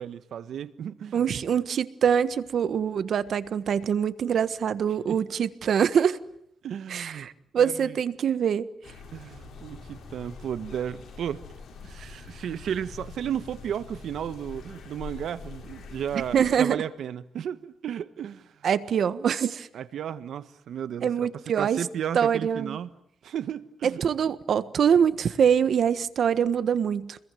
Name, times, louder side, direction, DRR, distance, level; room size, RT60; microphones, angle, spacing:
voice 1, 0.0-1.4 5.1-5.2 6.6-7.3 7.6-8.0 9.1-11.4 11.8-18.5 19.7-21.3 21.6-22.9 23.2-24.0, right 9 dB, 85° right, 1.3 m, -34 dB
voice 2, 1.1-6.2 6.9-8.7 16.3-16.8 18.6-19.7 21.0-21.8 22.1-22.8 23.8-27.2, right 8 dB, 70° right, 1.4 m, -24 dB
sound 1, 8.8-16.6, left 5 dB, 85° left, 5.7 m, -44 dB
29.5 x 22.0 x 9.2 m
cardioid pair, 115°, 0 cm